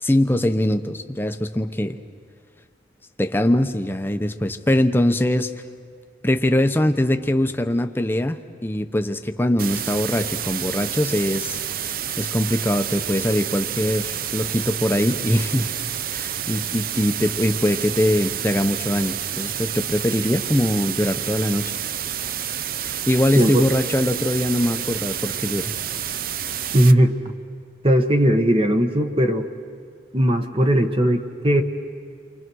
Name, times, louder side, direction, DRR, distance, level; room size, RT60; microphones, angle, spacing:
voice 1, 0.0-2.0 3.2-5.5 6.2-15.7 16.1-21.7 22.8-25.7, left 1 dB, 10° left, 7 dB, 0.8 m, -22 dB
sound 1, 9.6-26.9, right 9 dB, 50° right, 0.6 m, -29 dB
voice 2, 23.4-23.7 26.7-27.1 27.8-29.5 30.1-31.6, equal, 30° right, 6 dB, 1.2 m, -18 dB
30.0 x 24.5 x 6.3 m, 2.3 s
head